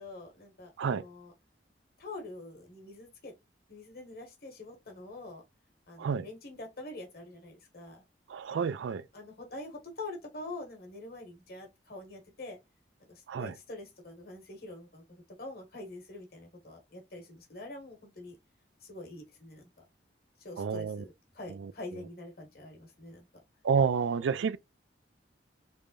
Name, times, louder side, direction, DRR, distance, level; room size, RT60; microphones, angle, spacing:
voice 1, 0.0-1.3 2.0-3.3 3.7-5.4 5.9-8.0 9.1-12.6 13.0-18.4 18.8-19.7 20.4-23.3, left 2 dB, 55° left, 1.4 m, -45 dB
voice 2, 8.3-9.0 13.3-13.5 20.6-21.0 23.6-24.6, right 6 dB, 85° right, 0.4 m, -29 dB
3.5 x 3.3 x 2.4 m
head